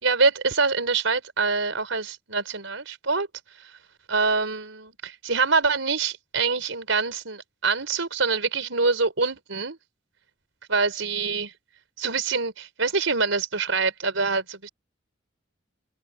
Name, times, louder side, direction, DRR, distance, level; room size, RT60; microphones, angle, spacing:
voice 1, 0.0-3.3 3.6-3.7 4.1-9.8 10.7-11.5 12.0-14.7, right 4 dB, 80° right, 4.4 m, -25 dB
open air
head